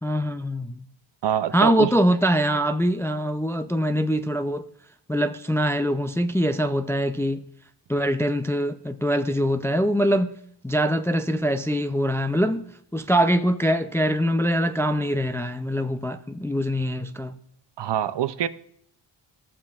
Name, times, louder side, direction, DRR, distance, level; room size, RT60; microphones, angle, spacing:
voice 1, 0.0-0.8 1.5-4.7 5.1-7.4 7.9-10.3 10.6-17.4, equal, 5° left, 0.3 m, -23 dB
voice 2, 1.2-1.9 17.8-18.5, right 10 dB, 60° right, 0.6 m, -25 dB
14.0 x 7.4 x 2.4 m
cardioid pair, 60°, 49 cm